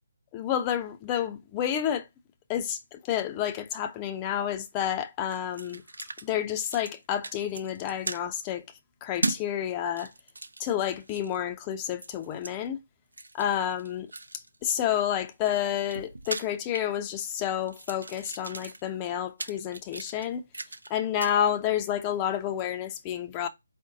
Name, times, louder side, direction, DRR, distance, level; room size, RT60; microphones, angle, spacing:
voice 1, 0.3-2.1 2.5-5.8 6.2-8.6 9.0-10.1 10.6-12.8 13.3-14.1 14.6-20.4 20.9-23.5, left 10 dB, 20° left, 0.5 m, -29 dB
sound 1, 5.3-6.3 6.5-7.0 7.2-8.2 9.2-9.4 9.8-11.4 12.0-12.5 13.1-14.5 15.2-17.3 17.6-20.9 21.2-21.4, right 2 dB, 75° right, 0.4 m, -38 dB
4.6 x 2.1 x 3.7 m
figure-of-eight pair, 145°, 0 cm